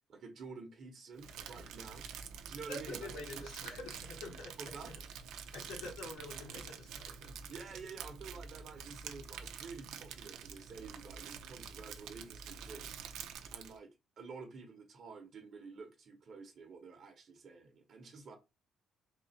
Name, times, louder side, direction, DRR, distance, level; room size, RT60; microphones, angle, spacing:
voice 1, 0.1-2.1 2.4-3.5 4.6-4.9 7.5-13.0 13.5-18.4, right 4 dB, 45° right, 1.1 m, -50 dB
Crumpling crinkling, 1.2-13.8, right 7 dB, 80° right, 0.6 m, -47 dB
voice 2, 2.7-4.5 5.5-7.3, left 2 dB, 80° left, 1.9 m, -46 dB
3.8 x 2.7 x 4.1 m
cardioid pair, 140°, 0 cm